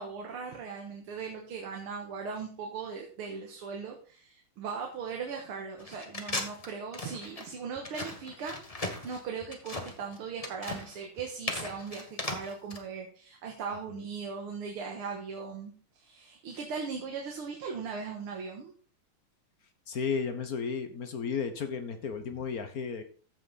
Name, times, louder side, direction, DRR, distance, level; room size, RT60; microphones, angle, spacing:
voice 1, 0.0-18.7, right 5 dB, 90° right, 2 dB, 2.2 m, -39 dB
sound 1, 5.8-12.8, left 2 dB, 20° left, 1.1 m, -38 dB
voice 2, 19.9-23.0, left 6 dB, 50° left, 8 dB, 1.2 m, -33 dB
14.5 x 5.7 x 4.1 m, 0.43 s
omnidirectional pair, 2.3 m